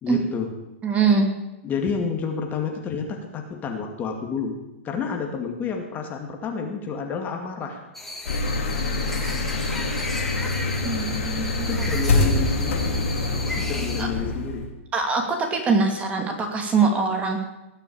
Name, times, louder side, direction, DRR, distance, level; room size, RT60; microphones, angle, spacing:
voice 1, 0.0-0.5 1.6-4.5 4.8-7.8 11.7-13.0 13.6-14.6, left 5 dB, 25° left, 3 dB, 2.3 m, -29 dB
voice 2, 0.8-1.3 10.8-11.7 14.0-14.1 14.9-17.4, right 4 dB, 15° right, 3 dB, 2.6 m, -23 dB
sound 1, 7.9-14.0, left 2 dB, 5° left, 1.9 m, -34 dB
sound 2, 8.2-14.7, left 2 dB, 80° left, 4.0 m, -25 dB
19.5 x 6.8 x 8.7 m, 0.96 s
hypercardioid pair, 135°, 7 cm